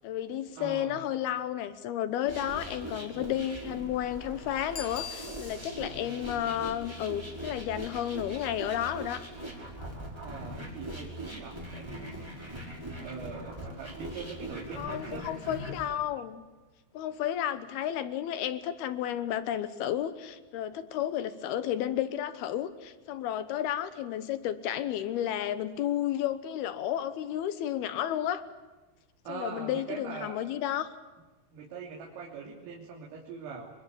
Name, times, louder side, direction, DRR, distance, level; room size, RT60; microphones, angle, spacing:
voice 1, 0.0-9.2 14.8-16.4 16.9-28.4 29.3-30.9, left 11 dB, 75° left, 12 dB, 2.3 m, -32 dB
voice 2, 0.6-1.0 10.2-12.2 13.0-15.3 29.3-30.4 31.5-33.7, right 5 dB, 75° right, -1 dB, 5.5 m, -42 dB
sound 1, 2.3-16.0, equal, 5° right, 4.4 m, -41 dB
Bicycle bell, 4.7-5.9 11.3-11.4, left 8 dB, 35° left, 3.2 m, -42 dB
26.5 x 24.5 x 8.5 m, 1.2 s
omnidirectional pair, 6.0 m